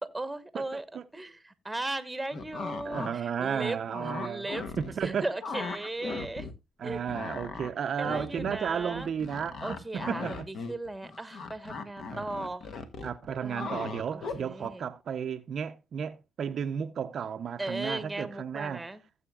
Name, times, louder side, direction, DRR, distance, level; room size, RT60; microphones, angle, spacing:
voice 1, 0.0-0.8 1.1-4.7 5.0-6.5 6.8-7.0 8.0-9.1 9.6-12.7 13.4-13.8 14.1-14.8 17.6-19.0, right 2 dB, 10° right, 1.2 m, -37 dB
voice 2, 0.5-1.0 2.8-4.5 4.8-5.3 6.8-10.5 12.1-12.3 13.0-18.9, right 7 dB, 55° right, 0.6 m, -33 dB
sound 1, 2.3-3.1 3.5-5.1 5.4-6.5 6.8-14.7, left 4 dB, 55° left, 1.4 m, -38 dB
15.5 x 7.8 x 2.3 m
cardioid pair, 90°, 0 cm